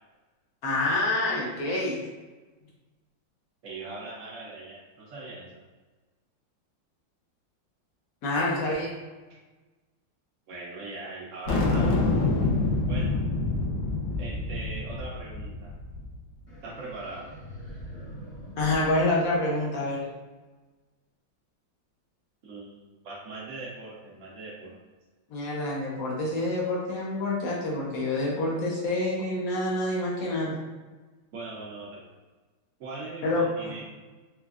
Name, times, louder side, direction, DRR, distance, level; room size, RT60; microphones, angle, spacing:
voice 1, 0.6-2.0 8.2-8.9 18.6-20.0 25.3-30.6 33.2-33.4, left 2 dB, 65° left, -4 dB, 0.9 m, -27 dB
voice 2, 3.6-5.5 10.5-12.0 12.8-13.1 14.2-15.7 16.6-17.3 22.4-24.8 31.3-32.1 32.8-33.8, right 3 dB, 85° right, -4 dB, 0.6 m, -40 dB
sound 1, 11.5-16.1, left 2 dB, 85° left, 1.5 m, -26 dB
sound 2, 16.5-19.9, equal, 35° left, 0.8 m, -44 dB
4.3 x 2.3 x 2.3 m, 1.2 s
omnidirectional pair, 2.1 m